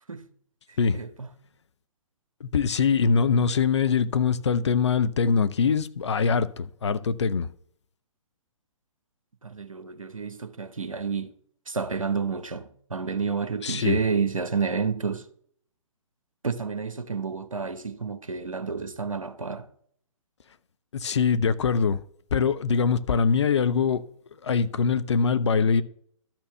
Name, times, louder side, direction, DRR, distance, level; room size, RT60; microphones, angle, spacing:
voice 1, 0.7-1.3 9.4-11.3 11.7-15.3 16.4-19.7, right 5 dB, 75° right, 0.9 m, -30 dB
voice 2, 2.4-7.5 13.6-14.0 20.9-22.0 22.3-24.0 24.4-25.8, left 5 dB, 55° left, 0.6 m, -23 dB
12.0 x 4.4 x 6.8 m
figure-of-eight pair, 125°, 17 cm